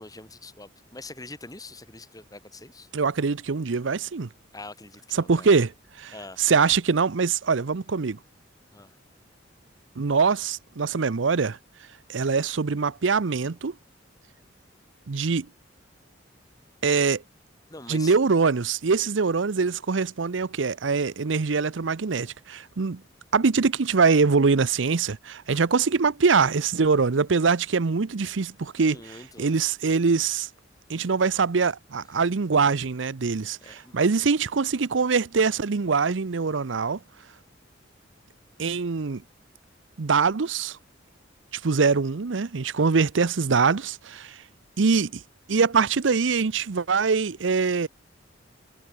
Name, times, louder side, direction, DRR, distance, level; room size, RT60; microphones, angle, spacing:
voice 1, 0.0-2.9 4.5-5.5 6.1-6.5 8.7-9.0 17.7-18.2 28.8-29.6 32.1-32.2 33.6-34.0, left 2 dB, 20° left, 4.9 m, -44 dB
voice 2, 2.9-4.3 5.1-5.7 6.0-6.1 6.4-8.2 10.0-11.6 12.1-13.7 15.1-15.5 16.8-17.2 17.9-23.0 23.3-29.0 29.4-30.5 30.9-37.0 38.6-39.2 40.0-40.8 41.5-44.4 44.8-45.2 45.5-47.9, right 5 dB, 80° right, 0.7 m, -23 dB
head